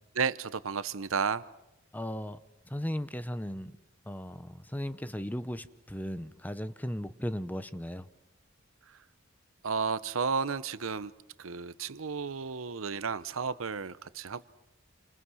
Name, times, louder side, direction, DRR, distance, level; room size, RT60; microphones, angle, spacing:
voice 1, 0.1-1.4 8.9-9.0 9.6-11.1 11.4-14.5, right 5 dB, 85° right, 0.8 m, -32 dB
voice 2, 1.9-2.4 2.7-3.7 4.1-8.1, equal, 10° left, 0.8 m, -36 dB
28.5 x 25.5 x 6.3 m
head